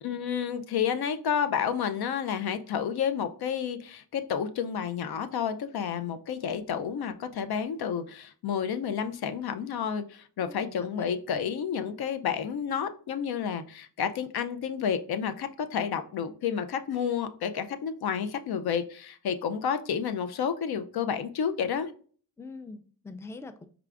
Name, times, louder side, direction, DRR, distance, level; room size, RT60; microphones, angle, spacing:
voice 1, 0.0-21.9, left 7 dB, 75° left, 11 dB, 0.5 m, -30 dB
voice 2, 10.4-10.9 22.4-23.7, left 3 dB, 10° left, 11 dB, 0.4 m, -43 dB
4.8 x 2.4 x 3.4 m, 0.43 s
cardioid pair, 55°, 38 cm